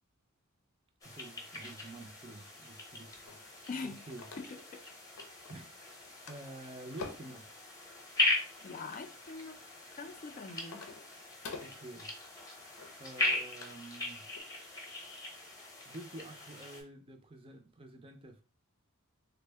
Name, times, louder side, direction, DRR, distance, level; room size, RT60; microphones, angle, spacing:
sound 1, 1.0-16.8, left 2 dB, 15° left, 0.8 m, -39 dB
voice 1, 1.0-4.3 5.5-6.0 6.3-7.5 11.6-12.1 13.0-14.3 15.9-18.4, right 2 dB, 25° right, 0.5 m, -49 dB
sound 2, 3.3-4.8 5.2-5.7 6.0-7.4 8.1-9.1 9.7-13.9 14.2-14.4, left 4 dB, 85° left, 0.6 m, -49 dB
voice 2, 3.7-4.0 4.4-4.8 5.4-5.5 8.6-10.9, left 4 dB, 35° left, 0.4 m, -44 dB
3.5 x 2.1 x 3.3 m
head